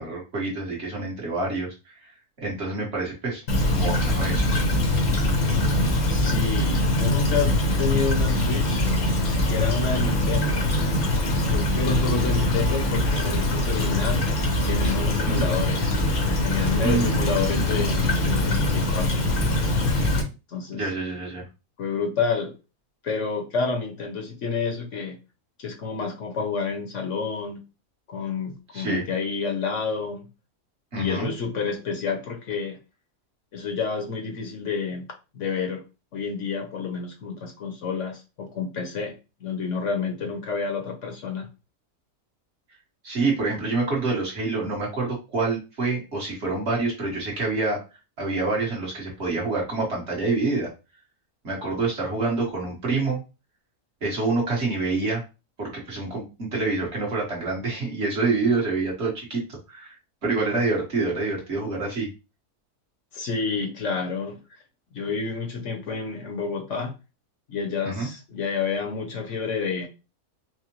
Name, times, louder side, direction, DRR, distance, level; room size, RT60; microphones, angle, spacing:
voice 1, 0.0-2.1 2.4-3.4 3.7-4.5 9.9-10.2 15.3-15.5 16.8-17.2 20.7-21.4 28.7-29.0 30.9-31.3 43.0-47.8 48.2-50.7 51.4-53.2 54.0-55.2 55.6-59.4 59.7-60.0 60.2-62.1 67.8-68.1, right 3 dB, 50° right, -2 dB, 1.6 m, -27 dB
Stream / Trickle dribble, 3.5-20.2, left 1 dB, 80° left, 1.5 m, -23 dB
voice 2, 6.1-8.9 9.2-10.7 11.5-14.3 14.6-19.1 20.5-20.9 21.8-22.5 23.0-25.2 25.6-27.6 28.1-30.3 31.0-32.8 33.5-35.1 35.3-35.8 36.1-39.1 39.4-41.5 63.1-64.6 64.9-66.9 67.5-69.9, left 5 dB, 60° left, 4 dB, 1.1 m, -29 dB
4.8 x 2.1 x 3.0 m, 0.29 s
omnidirectional pair, 1.5 m